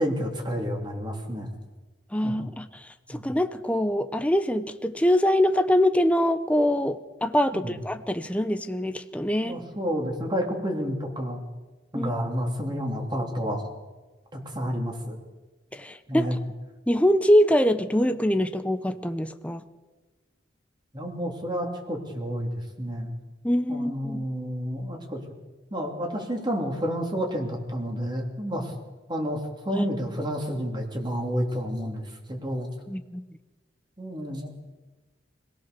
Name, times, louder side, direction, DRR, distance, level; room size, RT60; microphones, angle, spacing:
voice 1, 0.0-1.5 2.2-2.4 3.1-3.2 7.5-7.8 9.4-11.4 11.9-13.6 14.3-15.2 16.1-16.4 20.9-22.5 22.8-23.1 23.7-25.2 25.7-28.7 29.1-32.7 34.0-34.5, equal, 25° right, 2 dB, 3.1 m, -30 dB
voice 2, 2.1-2.7 3.1-9.6 11.9-12.1 15.7-16.4 16.9-19.6 23.4-24.2 29.7-29.8 32.9-33.2, equal, 5° left, 9 dB, 0.8 m, -24 dB
25.0 x 17.0 x 6.9 m, 1.2 s
head